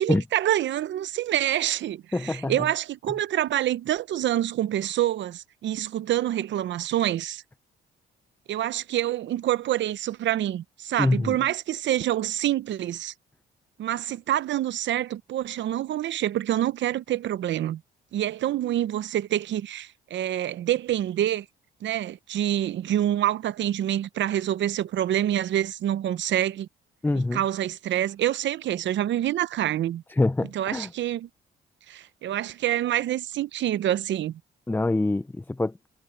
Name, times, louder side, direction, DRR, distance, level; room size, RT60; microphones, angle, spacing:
voice 1, 0.0-7.4 8.5-13.1 13.8-17.8 18.1-21.4 21.8-26.7 27.3-30.0 30.5-31.3 31.9-34.4, right 12 dB, 65° right, 0.7 m, -26 dB
voice 2, 2.1-2.7 11.0-11.4 27.0-27.4 30.1-30.9 34.7-35.8, left 2 dB, 10° left, 0.6 m, -25 dB
cardioid pair, 90°, 20 cm